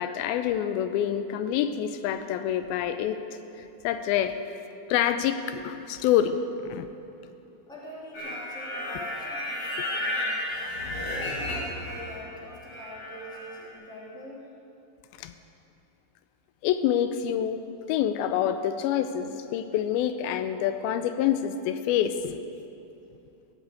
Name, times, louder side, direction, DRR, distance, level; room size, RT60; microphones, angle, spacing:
voice 1, 0.0-4.4 4.9-6.4 6.6-6.9 15.2-15.3 16.6-17.6 17.9-22.4, left 10 dB, 85° left, 10 dB, 2.4 m, -27 dB
voice 2, 7.7-10.4 10.8-14.4, left 1 dB, ahead, -7 dB, 2.5 m, -43 dB
sound 1, 8.1-12.2 12.5-13.6, left 1 dB, 50° left, 4.2 m, -33 dB
15.5 x 8.1 x 8.2 m, 2.8 s
omnidirectional pair, 4.3 m